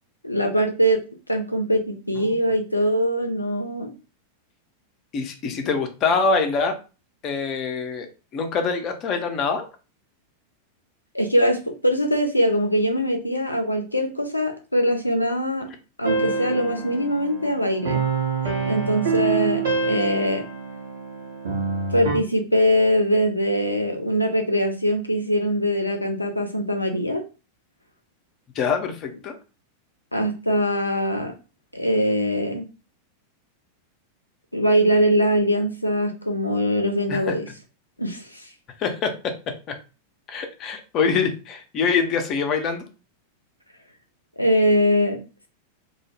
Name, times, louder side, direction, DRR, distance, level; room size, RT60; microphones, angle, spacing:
voice 1, 0.2-1.0 1.3-3.9 11.1-15.7 16.0-18.0 18.7-20.4 21.9-27.2 30.1-31.3 31.7-32.6 34.5-37.5 38.0-38.4 44.4-45.2, equal, 85° left, 4 dB, 0.5 m, -22 dB
voice 2, 5.1-6.7 7.2-8.1 8.3-9.7 28.6-29.4 37.1-37.3 38.8-39.1 40.3-42.9, left 5 dB, 35° left, 6 dB, 0.5 m, -24 dB
sound 1, 16.0-22.2, right 5 dB, 65° right, 0.8 m, -26 dB
2.2 x 2.0 x 3.1 m, 0.32 s
figure-of-eight pair, 90°, 0 cm